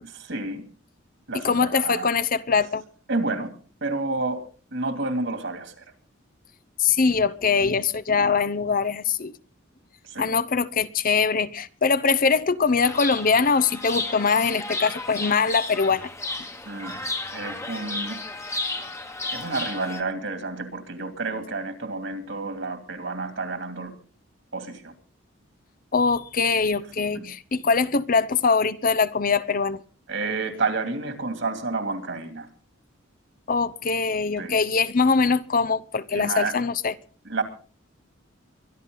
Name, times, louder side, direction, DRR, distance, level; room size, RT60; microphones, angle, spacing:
voice 1, 0.2-0.6 1.3-2.1 3.1-3.5 3.8-4.4 4.7-5.8 10.1-10.3 16.6-17.0 17.3-18.2 19.3-23.9 24.5-24.9 27.2-27.3 30.1-32.5 34.4-34.6 36.1-36.5 37.2-37.4, right 3 dB, 65° right, 2.8 m, -30 dB
voice 2, 1.4-2.8 6.8-9.3 10.2-16.1 25.9-29.8 33.5-36.9, left 5 dB, 45° left, 0.8 m, -22 dB
Chirp tweet, 12.8-20.0, left 2 dB, 15° left, 1.3 m, -33 dB
23.5 x 11.5 x 3.9 m
head